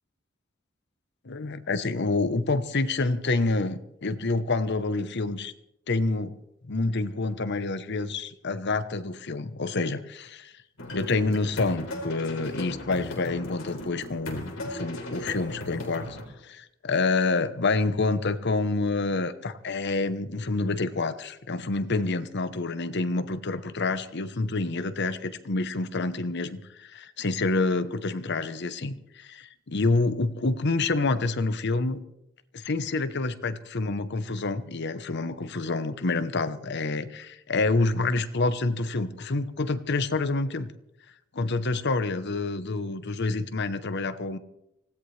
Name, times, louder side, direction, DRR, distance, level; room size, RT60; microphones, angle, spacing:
voice 1, 1.2-5.5 5.9-6.4 6.7-10.3 10.9-16.2 16.4-29.3 29.7-32.0 32.5-40.7 41.3-44.4, left 3 dB, 60° left, 12 dB, 0.9 m, -27 dB
sound 1, 10.8-16.3, left 1 dB, 75° left, 3.8 m, -37 dB
24.5 x 17.0 x 3.3 m, 0.86 s
head